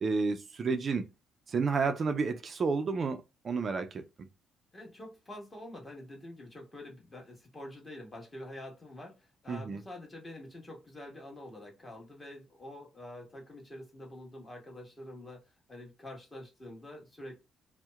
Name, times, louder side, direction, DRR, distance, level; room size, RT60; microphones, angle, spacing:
voice 1, 0.0-1.1 1.5-4.0 9.5-9.8, right 4 dB, 45° right, 0.3 m, -31 dB
voice 2, 4.7-15.4 15.7-17.4, left 1 dB, 25° left, 1.3 m, -47 dB
2.7 x 2.0 x 2.3 m
cardioid pair, 90°, 0 cm